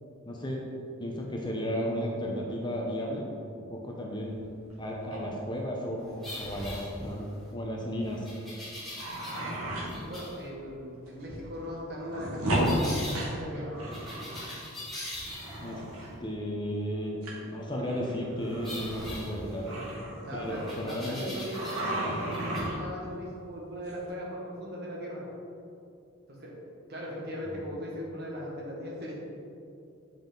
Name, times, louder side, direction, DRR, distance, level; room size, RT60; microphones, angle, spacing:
voice 1, 0.2-0.6 1.0-3.3 3.6-4.3 4.8-7.3 7.5-8.3 15.6-15.8 16.2-17.2 17.4-19.8 20.3-21.2 27.5-27.6, equal, 20° left, -1 dB, 0.7 m, -34 dB
sound 1, 4.3-4.7 5.0-5.2 6.1-6.4 6.7-6.8 7.0-7.2 8.0-8.1 8.7-9.9 10.5-10.6 11.1-11.5 11.8-14.6 14.9-16.1 17.2-17.3 17.8-21.3 21.5-23.0 23.9-24.1, right 1 dB, 90° right, 1.6 m, -34 dB
sound 2, 6.2-7.4 8.2-9.6 9.9-10.4 12.6-13.2 13.9-15.7 18.6-19.9 20.7-22.0 22.3-22.6, left 1 dB, ahead, 1.8 m, -41 dB
voice 2, 9.8-13.7 20.2-25.2 26.3-26.5 26.9-29.1, equal, 50° right, -4 dB, 1.6 m, -39 dB
7.8 x 5.4 x 3.9 m, 2.6 s
head